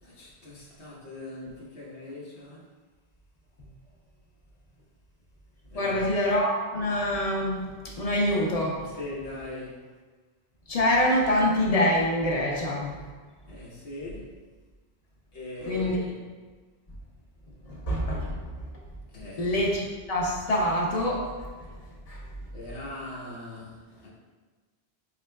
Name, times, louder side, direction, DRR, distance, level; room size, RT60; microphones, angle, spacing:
voice 1, 0.0-2.6 5.7-6.2 8.8-9.9 13.5-14.3 15.3-16.1 19.1-19.7 22.5-24.1, left 2 dB, 90° left, -6 dB, 1.2 m, -40 dB
voice 2, 5.7-7.6 8.0-8.8 10.7-13.0 15.6-16.0 17.7-18.4 19.4-21.3 22.1-22.2, left 1 dB, 40° left, -2 dB, 0.7 m, -25 dB
4.0 x 3.5 x 2.2 m, 1.4 s
omnidirectional pair, 1.1 m